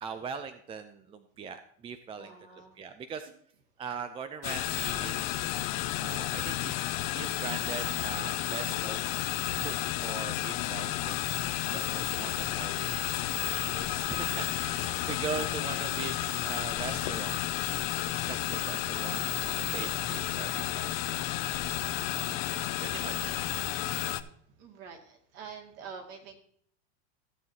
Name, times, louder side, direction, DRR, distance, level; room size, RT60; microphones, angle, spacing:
voice 1, 0.0-3.3 3.8-5.4 6.0-9.1 9.6-11.2 11.7-17.4 18.1-21.2 21.6-21.9 22.5-23.4, right 6 dB, 15° right, 9 dB, 0.4 m, -41 dB
voice 2, 2.2-2.8 14.7-15.2 24.6-26.4, right 6 dB, 50° right, 2 dB, 2.3 m, -47 dB
sound 1, 4.4-24.2, left 15 dB, 65° left, 0.7 m, -32 dB
15.0 x 7.5 x 2.8 m, 0.63 s
supercardioid pair, 130°, 32 cm